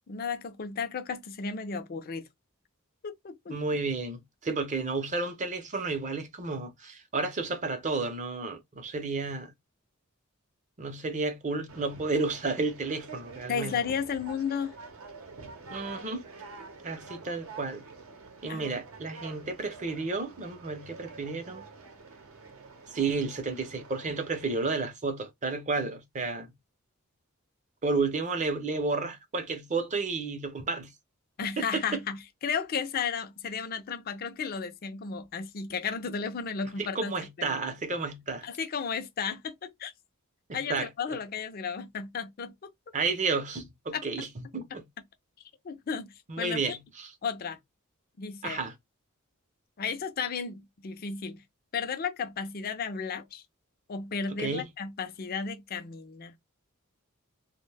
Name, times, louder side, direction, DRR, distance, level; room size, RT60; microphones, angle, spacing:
voice 1, 0.1-2.3 3.0-3.6 13.5-14.7 18.5-18.7 31.4-37.6 38.4-39.9 40.5-42.7 43.9-44.3 45.6-46.8 47.2-47.6 48.2-48.6 49.8-51.4 51.7-53.4 53.9-56.4, left 6 dB, 45° left, 0.4 m, -34 dB
voice 2, 3.5-9.5 10.8-13.8 15.7-16.3 16.8-17.8 18.4-21.6 22.9-26.5 27.8-30.9 31.6-32.0 36.8-38.5 40.5-40.9 42.9-44.3 44.5-44.8 46.3-47.1 48.4-48.7 54.4-54.6, right 3 dB, 35° right, 0.6 m, -32 dB
Conversation, 11.7-24.7, right 4 dB, 75° right, 0.7 m, -47 dB
2.4 x 2.1 x 3.3 m
head